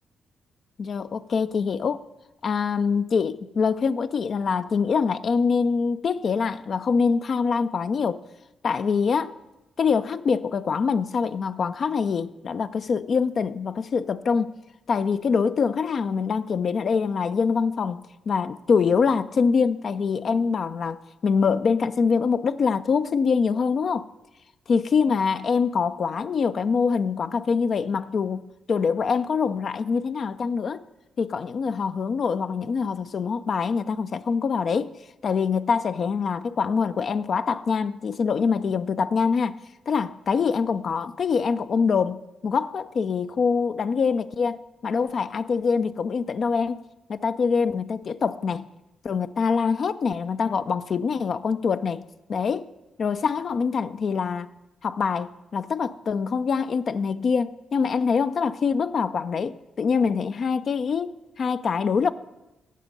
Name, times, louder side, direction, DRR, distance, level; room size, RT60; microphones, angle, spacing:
voice 1, 0.8-2.0 2.4-8.2 8.6-9.3 9.8-14.5 14.9-24.1 24.7-30.8 31.2-34.9 35.2-39.6 39.9-46.8 47.1-48.7 49.0-52.7 53.0-54.5 54.8-62.1, left 5 dB, 60° left, 0.4 m, -24 dB
15.0 x 5.1 x 5.2 m
hypercardioid pair, 40°, 0 cm